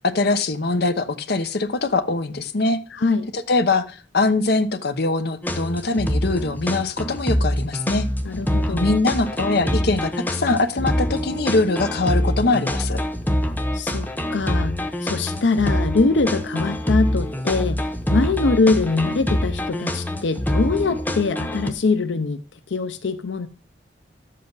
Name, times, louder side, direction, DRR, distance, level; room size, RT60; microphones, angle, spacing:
voice 1, 0.0-2.8 3.3-8.1 8.7-13.0, left 3 dB, 60° left, 0.9 m, -22 dB
voice 2, 2.9-3.3 8.2-8.9 13.7-14.8 15.0-17.8 18.1-22.4 22.7-23.5, left 3 dB, 90° left, 0.6 m, -23 dB
sound 1, 5.4-21.7, equal, 10° left, 1.0 m, -25 dB
11.5 x 7.6 x 4.0 m
head